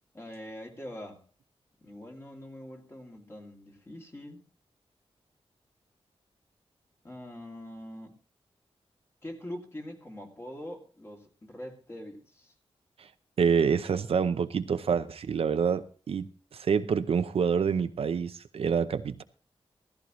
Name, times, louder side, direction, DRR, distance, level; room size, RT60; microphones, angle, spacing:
voice 1, 0.1-1.2 1.8-4.4 7.0-8.2 9.2-12.5, left 1 dB, 25° left, 2.6 m, -43 dB
voice 2, 13.4-16.3 16.5-19.2, right 6 dB, 70° right, 0.7 m, -27 dB
16.0 x 14.0 x 3.1 m
wide cardioid pair, 175°, 10 cm